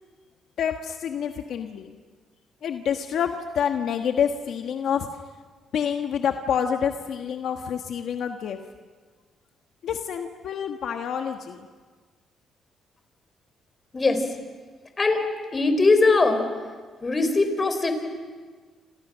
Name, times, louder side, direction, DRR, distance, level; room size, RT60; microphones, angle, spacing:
voice 1, 0.6-2.0 2.6-5.1 5.7-8.6 9.8-11.7, left 8 dB, 70° left, 5 dB, 1.4 m, -27 dB
voice 2, 13.9-14.2 15.0-15.2 15.5-16.5 17.0-17.9, left 3 dB, 30° left, 7 dB, 4.5 m, -20 dB
29.5 x 27.0 x 6.3 m, 1.5 s
cardioid pair, 90°, 0 cm